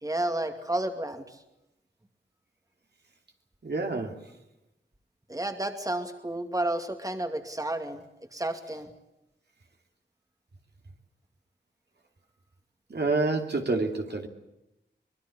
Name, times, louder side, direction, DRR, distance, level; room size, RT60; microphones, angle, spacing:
voice 1, 0.0-1.4 5.3-8.0 8.3-8.9, right 1 dB, 20° right, 6 dB, 2.4 m, -31 dB
voice 2, 3.6-4.2 12.9-14.3, right 3 dB, 60° right, 3 dB, 2.8 m, -28 dB
24.5 x 21.0 x 8.6 m, 0.89 s
wide cardioid pair, 75°, 20 cm